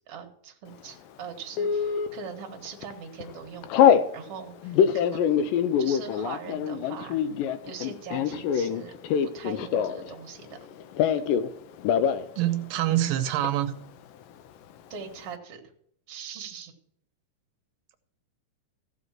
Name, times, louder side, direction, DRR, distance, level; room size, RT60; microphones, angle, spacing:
voice 1, 0.0-5.3 5.8-7.2 7.7-8.9 9.2-10.6 14.9-15.6 16.1-16.7, right 6 dB, 50° right, 2 dB, 2.2 m, -41 dB
Telephone, 1.6-2.1 2.7-2.9 3.2-4.1 4.6-10.1 10.4-11.5 11.8-12.2 12.5-12.6 12.9-13.5, left 8 dB, 90° left, 2.3 m, -24 dB
voice 2, 12.4-13.7, right 13 dB, 85° right, 7 dB, 2.4 m, -25 dB
15.0 x 5.3 x 7.4 m, 0.68 s
omnidirectional pair, 3.9 m